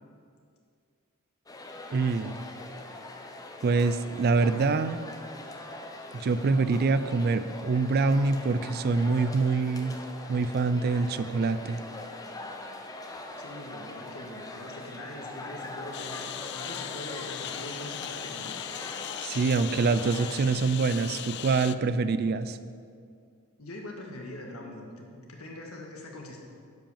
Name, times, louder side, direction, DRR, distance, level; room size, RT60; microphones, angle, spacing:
sound 1, 1.5-20.4, left 2 dB, 15° left, 0.6 m, -42 dB
voice 1, 1.9-2.4 3.6-5.0 6.1-10.0 10.3-11.8 19.2-22.6, right 4 dB, 45° right, 12 dB, 0.4 m, -25 dB
voice 2, 13.4-18.5 23.6-26.4, left 1 dB, 70° left, 0 dB, 1.7 m, -42 dB
Engine, 15.9-21.8, left 11 dB, 50° left, 0.3 m, -38 dB
10.5 x 5.2 x 7.1 m, 2.3 s
head